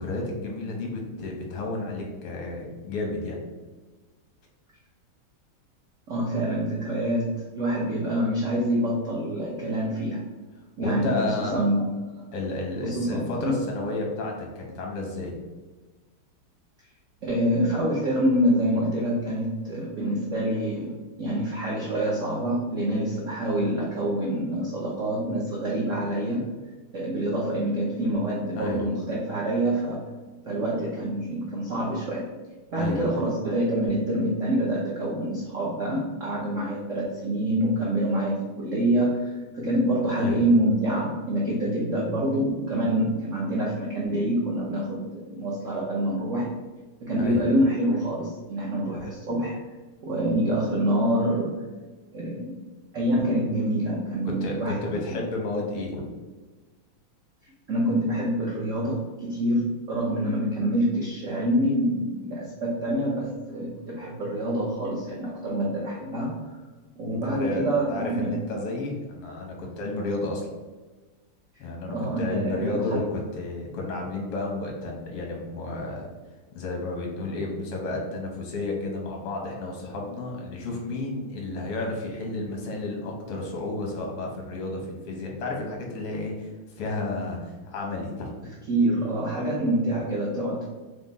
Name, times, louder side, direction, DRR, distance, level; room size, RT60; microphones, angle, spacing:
voice 1, 0.0-3.5 10.8-11.6 12.3-15.4 28.6-28.9 32.8-33.3 40.1-40.4 47.2-47.4 54.3-56.0 67.1-70.5 71.6-76.1 76.5-88.3, left 2 dB, 85° left, 0 dB, 1.9 m, -32 dB
voice 2, 6.1-10.2 10.8-11.9 12.8-13.6 17.2-20.9 21.2-26.4 26.9-30.1 30.5-32.3 32.7-46.5 47.0-49.6 50.0-51.5 52.1-52.5 52.9-55.2 57.4-66.6 67.0-68.4 71.9-73.0 88.7-90.7, right 1 dB, 85° right, -4 dB, 0.6 m, -26 dB
5.1 x 2.0 x 4.0 m, 1.3 s
omnidirectional pair, 2.4 m